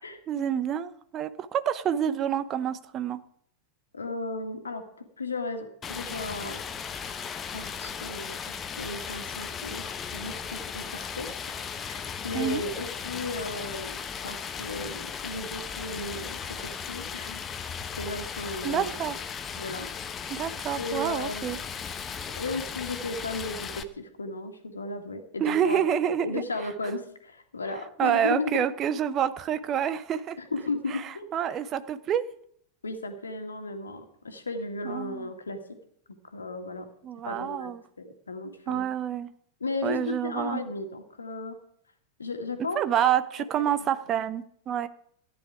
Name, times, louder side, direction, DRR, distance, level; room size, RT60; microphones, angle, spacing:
voice 1, 0.3-3.2 12.3-12.6 18.6-19.2 20.3-21.6 25.4-26.4 28.0-30.4 30.9-32.3 34.8-35.3 37.0-37.8 38.7-39.3 39.8-40.6 42.7-44.9, right 9 dB, 30° right, 13 dB, 0.8 m, -28 dB
voice 2, 3.9-4.8 5.2-6.6 7.5-9.8 10.1-17.4 18.0-18.9 19.6-19.9 20.8-21.6 22.3-25.8 26.2-28.7 30.4-31.3 32.8-35.6 36.3-36.9 37.2-37.7 38.0-38.8 39.6-41.6 42.2-43.1, left 2 dB, 75° left, 6 dB, 1.8 m, -35 dB
Stream, 5.8-23.8, left 7 dB, 25° left, 0.9 m, -36 dB
14.5 x 9.7 x 4.8 m, 0.66 s
figure-of-eight pair, 90°, 0 cm